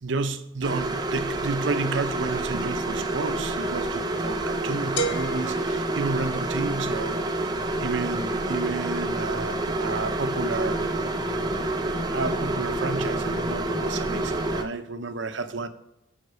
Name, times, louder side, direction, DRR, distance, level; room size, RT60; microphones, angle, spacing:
voice 1, 0.0-7.2 7.8-10.9 12.1-15.7, right 3 dB, 70° right, 0.7 m, -31 dB
sound 1, 0.6-14.6, right 2 dB, 20° right, 0.7 m, -28 dB
sound 2, 5.0-6.8, right 2 dB, 65° left, 0.8 m, -33 dB
7.9 x 5.8 x 6.3 m
head